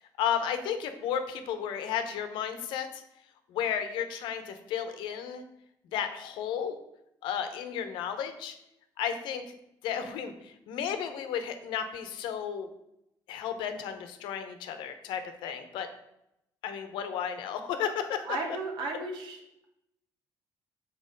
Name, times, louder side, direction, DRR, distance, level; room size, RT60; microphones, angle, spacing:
voice 1, 0.2-3.0 3.5-5.5 5.9-6.8 7.2-8.6 9.0-9.5 9.8-12.7 13.3-15.9 16.6-18.3, left 8 dB, 90° left, 8 dB, 0.9 m, -33 dB
voice 2, 18.3-19.4, right 3 dB, 85° right, 2 dB, 1.5 m, -34 dB
6.6 x 4.5 x 5.2 m, 0.83 s
cardioid pair, 110°, 8 cm